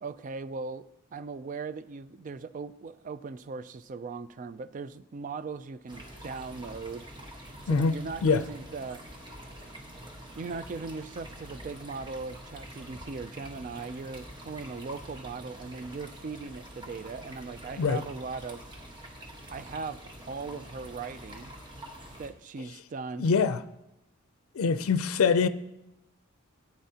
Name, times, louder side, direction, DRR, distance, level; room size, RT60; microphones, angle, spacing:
voice 1, 0.0-7.1 7.6-9.0 10.3-18.6 19.5-20.0 20.3-21.5 22.2-23.3, right 4 dB, 40° right, 0.3 m, -39 dB
sound 1, 5.9-22.3, equal, 20° right, 1.2 m, -46 dB
voice 2, 23.2-23.6 24.5-25.5, left 5 dB, 80° left, 0.4 m, -24 dB
13.5 x 8.6 x 2.8 m
head